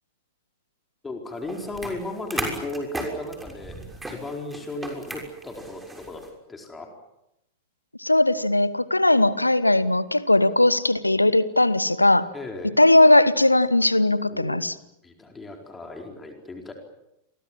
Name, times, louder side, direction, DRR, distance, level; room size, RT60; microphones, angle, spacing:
voice 1, 1.0-6.2 6.5-6.9 12.3-12.7 14.3-14.6 15.0-16.7, left 2 dB, 15° left, 3 dB, 4.4 m, -35 dB
sound 1, 1.4-6.3, right 2 dB, 10° right, 6.4 m, -35 dB
voice 2, 8.0-12.3 12.8-14.7, left 1 dB, 85° left, 17 dB, 1.2 m, -19 dB
29.5 x 24.0 x 7.5 m, 0.86 s
figure-of-eight pair, 90°, 0 cm